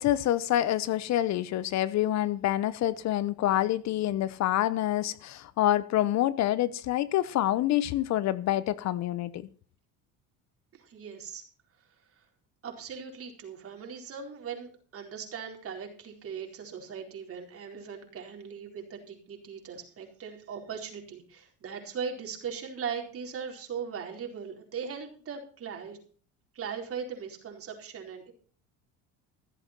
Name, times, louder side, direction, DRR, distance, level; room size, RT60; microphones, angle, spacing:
voice 1, 0.0-9.5, left 13 dB, 55° left, 0.9 m, -27 dB
voice 2, 10.7-11.4 12.2-12.3 12.6-26.0 26.5-28.3, right 6 dB, 40° right, 4.4 m, -39 dB
15.0 x 8.2 x 6.0 m
supercardioid pair, 105°, 34 cm